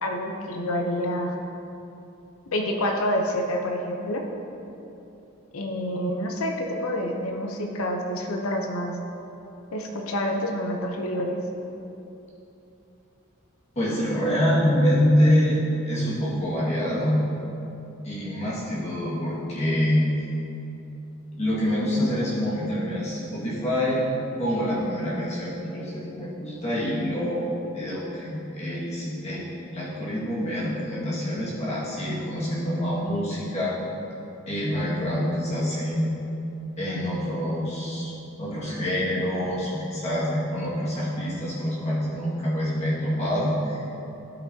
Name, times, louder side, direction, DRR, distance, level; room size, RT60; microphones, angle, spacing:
voice 1, 0.0-1.4 2.5-4.2 5.5-8.9 9.7-11.4, equal, 80° left, 2 dB, 0.7 m, -28 dB
voice 2, 13.8-15.6 15.9-17.2 18.0-20.1 21.4-24.0 24.4-33.8 34.5-36.1 36.8-38.1 38.4-43.8, equal, 30° left, -8 dB, 1.8 m, -26 dB
13.0 x 5.8 x 2.8 m, 2.9 s
head